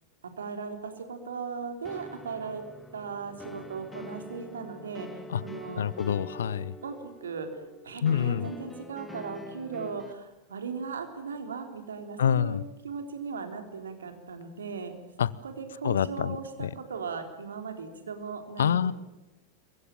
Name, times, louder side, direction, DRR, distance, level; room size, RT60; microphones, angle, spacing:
voice 1, 0.4-2.6 2.9-6.0 6.8-7.0 7.2-12.6 12.8-14.9 15.4-18.9, right 5 dB, 70° right, 5 dB, 3.7 m, -38 dB
sound 1, 1.8-10.1, left 2 dB, 10° left, 1.5 m, -45 dB
voice 2, 5.8-6.7 8.0-8.5 12.2-12.6 15.2-15.3 15.8-16.7 18.6-18.9, left 8 dB, 65° left, 20 dB, 0.9 m, -26 dB
27.5 x 23.0 x 7.6 m, 1.0 s
figure-of-eight pair, 90°, 0 cm